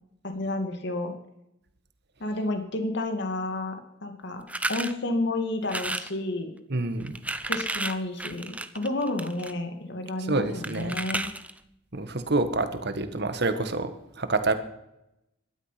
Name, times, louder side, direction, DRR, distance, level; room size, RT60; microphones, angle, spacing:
voice 1, 0.2-1.2 2.2-4.4 4.7-6.5 7.5-11.3, left 2 dB, 60° left, 6 dB, 2.3 m, -31 dB
sound 1, 4.5-4.9 5.6-6.1 7.0-9.5 10.6-11.6, right 2 dB, 5° right, 0.7 m, -32 dB
voice 2, 6.7-7.2 10.2-10.9 11.9-14.5, right 2 dB, 55° right, 9 dB, 1.7 m, -27 dB
18.5 x 12.0 x 5.9 m, 0.85 s
head